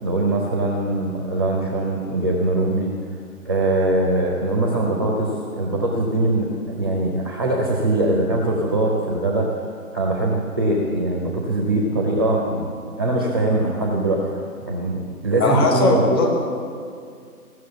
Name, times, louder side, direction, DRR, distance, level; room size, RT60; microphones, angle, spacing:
voice 1, 0.0-2.9 3.5-9.7 9.9-12.6 13.0-16.3, right 2 dB, 15° right, -1 dB, 0.6 m, -22 dB
voice 2, 15.4-16.3, left 2 dB, 15° left, 1 dB, 0.9 m, -19 dB
16.0 x 6.3 x 6.9 m, 2.3 s
figure-of-eight pair, 145°, 46 cm